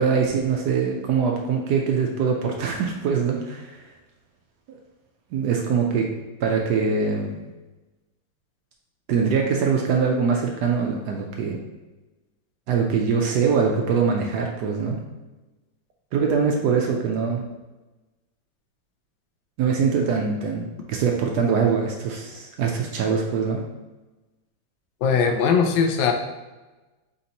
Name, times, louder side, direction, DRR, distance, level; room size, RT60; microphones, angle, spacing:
voice 1, 0.0-3.7 5.3-6.1 6.4-7.3 9.1-11.6 12.7-15.0 16.1-17.4 19.6-23.6, right 5 dB, 75° right, 1 dB, 0.9 m, -23 dB
voice 2, 25.0-26.1, left 6 dB, 75° left, 4 dB, 1.3 m, -20 dB
4.2 x 4.0 x 2.8 m, 1.1 s
omnidirectional pair, 2.2 m